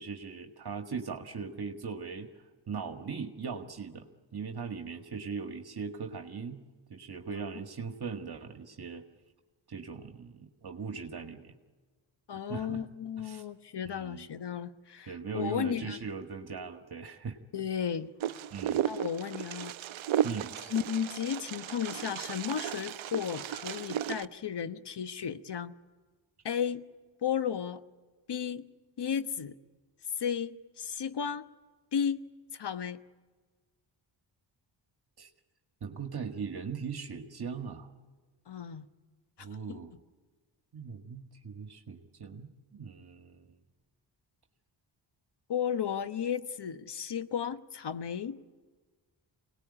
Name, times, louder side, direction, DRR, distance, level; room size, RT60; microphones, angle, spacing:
voice 1, 0.0-2.3 2.7-4.1 4.3-6.6 6.9-9.0 9.7-11.5 12.5-12.8 13.2-13.4 13.9-14.2 15.1-17.4 18.5-18.8 20.2-20.5 35.2-35.3 35.8-37.9 39.4-39.9 40.7-43.5, right 5 dB, 55° right, 5 dB, 1.8 m, -39 dB
voice 2, 12.3-16.0 17.5-18.1 18.8-19.7 20.7-25.7 26.4-26.8 27.2-27.8 28.3-28.6 29.0-29.5 30.2-31.4 31.9-32.2 32.5-33.0 38.5-38.9 39.7-39.8 45.5-48.4, left 8 dB, 60° left, 11 dB, 1.2 m, -34 dB
Wind, 18.2-24.2, right 11 dB, 75° right, 0.7 m, -34 dB
25.0 x 19.0 x 10.0 m, 1.4 s
cardioid pair, 60°, 47 cm